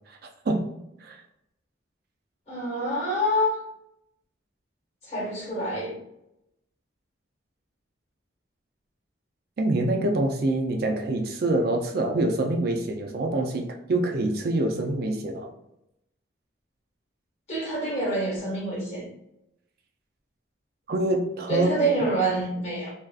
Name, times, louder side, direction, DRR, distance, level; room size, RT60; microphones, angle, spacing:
voice 1, 2.5-3.6 5.1-6.0 17.5-19.1 21.5-22.9, right 1 dB, 35° left, -5 dB, 1.3 m, -26 dB
voice 2, 9.6-15.5 20.9-21.8, right 2 dB, 50° right, 2 dB, 0.4 m, -25 dB
2.5 x 2.3 x 2.3 m, 0.83 s
head